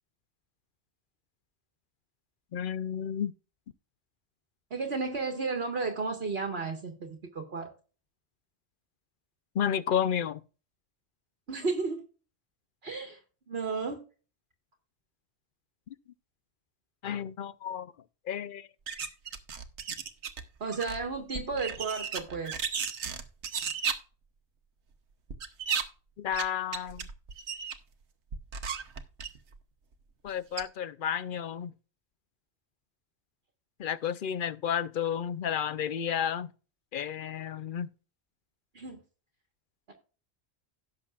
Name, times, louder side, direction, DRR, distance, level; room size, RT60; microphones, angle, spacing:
voice 1, 2.5-3.3 9.5-10.4 17.0-17.9 18.3-18.7 26.2-27.1 30.2-31.7 33.8-36.5 36.9-37.9, left 9 dB, 55° left, 0.7 m, -31 dB
voice 2, 4.7-7.7 11.5-12.0 12.8-13.2 13.5-14.0 20.6-22.6 38.7-39.0 39.9-40.0, right 4 dB, 65° right, 1.7 m, -33 dB
sound 1, 18.9-20.4 20.7-23.9 25.3-25.8 26.3-26.5 26.7-27.8 28.3-29.6 30.3-30.4 30.6-30.7, right 6 dB, 85° right, 1.3 m, -34 dB
17.0 x 6.6 x 2.4 m
omnidirectional pair, 1.1 m